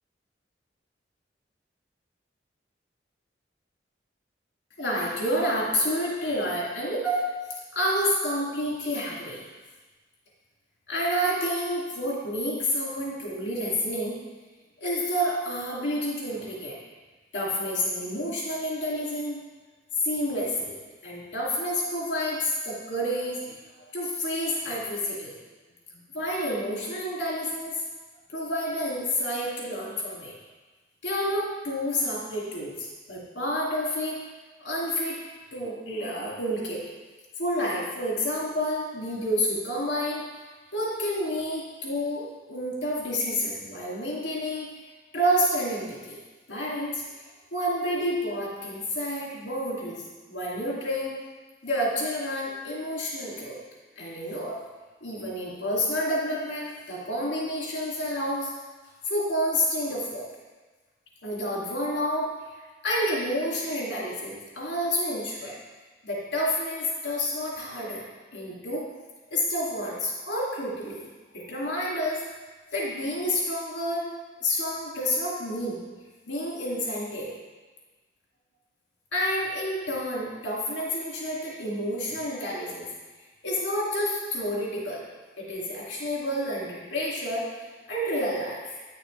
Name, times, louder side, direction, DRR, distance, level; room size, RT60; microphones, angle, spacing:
voice 1, 4.8-7.3 7.7-9.4 10.9-14.2 14.8-16.8 17.3-19.4 20.0-20.8 21.0-25.3 26.1-27.7 28.3-30.3 31.0-34.2 34.6-35.2 35.5-36.8 37.4-40.3 40.7-44.7 45.1-46.2 46.5-47.0 47.5-50.0 50.3-51.1 51.6-53.6 54.0-54.6 55.0-58.5 59.0-60.3 61.2-62.3 62.8-65.6 66.0-68.0 68.3-68.9 69.3-71.1 71.3-72.2 72.7-74.1 74.4-75.8 76.3-77.3 79.1-82.9 83.4-85.0 85.4-87.5 87.9-88.8, equal, 75° left, -5 dB, 2.5 m, -29 dB
9.6 x 6.5 x 3.3 m, 1.3 s
head